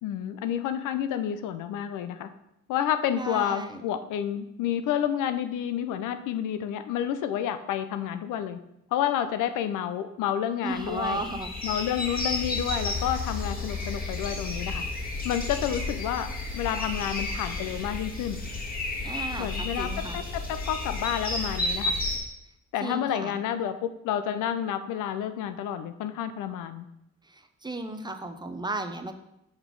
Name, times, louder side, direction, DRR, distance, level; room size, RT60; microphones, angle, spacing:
voice 1, 0.0-2.3 2.7-8.6 8.9-11.3 11.6-14.9 15.2-18.4 19.4-22.0 22.7-26.9, left 10 dB, 85° left, 10 dB, 0.5 m, -30 dB
voice 2, 3.1-3.8 10.6-11.5 19.0-20.2 22.8-23.3 27.6-29.1, right 2 dB, 15° right, 7 dB, 0.5 m, -34 dB
sound 1, 10.7-22.2, left 2 dB, 30° left, 1.7 m, -32 dB
5.4 x 4.0 x 4.6 m, 0.83 s
cardioid pair, 90°, 30 cm